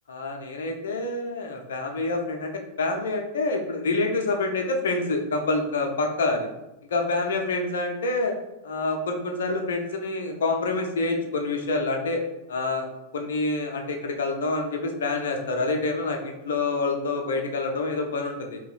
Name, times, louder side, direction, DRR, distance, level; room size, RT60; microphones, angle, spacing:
voice 1, 0.1-6.5 6.9-8.3 8.6-12.2 12.5-12.9 13.1-18.6, left 3 dB, 65° left, 3 dB, 0.6 m, -27 dB
3.0 x 2.8 x 3.9 m, 0.94 s
figure-of-eight pair, 90°, 0 cm